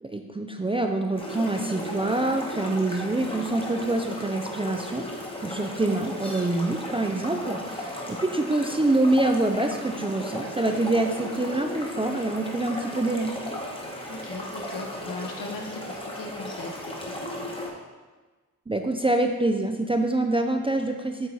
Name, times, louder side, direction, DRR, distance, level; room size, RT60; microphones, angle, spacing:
voice 1, 0.0-5.1 5.4-13.3 18.7-21.3, right 2 dB, 15° right, 4 dB, 0.3 m, -26 dB
sound 1, 1.2-17.7, left 1 dB, 15° left, 1.0 m, -36 dB
voice 2, 14.1-17.5, left 2 dB, 70° left, 2 dB, 1.1 m, -39 dB
8.2 x 4.1 x 4.5 m, 1.3 s
wide cardioid pair, 155°, 34 cm